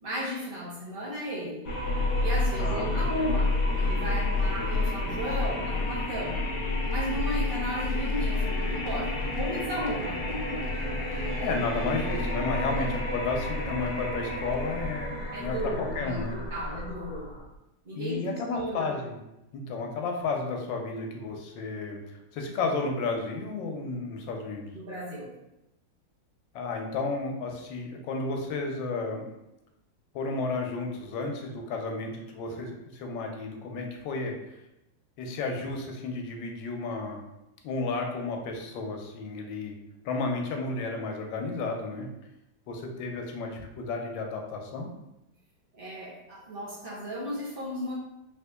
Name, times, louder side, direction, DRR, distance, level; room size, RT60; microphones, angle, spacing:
voice 1, 0.0-1.7 2.2-6.5 6.9-10.6 12.6-12.8 15.3-17.3 17.8-18.9 24.7-25.3 45.7-47.9, equal, 60° right, -5 dB, 0.5 m, -35 dB
sound 1, 1.6-17.5, left 2 dB, 70° left, 1.1 m, -30 dB
voice 2, 2.6-3.3 11.4-15.1 15.4-16.4 18.0-19.2 19.5-22.0 22.3-24.7 26.5-29.2 30.1-34.3 35.2-37.2 37.6-39.7 40.0-42.1 42.7-44.9, left 3 dB, 90° left, 2 dB, 1.3 m, -32 dB
3.6 x 3.0 x 2.2 m, 0.91 s
omnidirectional pair, 2.0 m